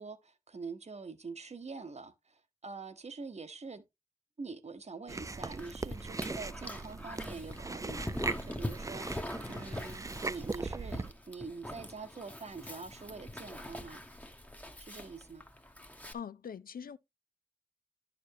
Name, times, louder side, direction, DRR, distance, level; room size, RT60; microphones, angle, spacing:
voice 1, 0.0-3.8 4.4-9.1 9.5-14.0 14.8-15.4, right 4 dB, 50° right, 1.0 m, -45 dB
Chewing mastication, 5.1-11.1, right 3 dB, 20° right, 0.4 m, -39 dB
Dog, 5.6-16.1, left 1 dB, 10° left, 0.9 m, -43 dB
voice 2, 16.1-17.0, left 7 dB, 90° left, 0.5 m, -43 dB
10.5 x 6.8 x 2.8 m
wide cardioid pair, 100°, 15 cm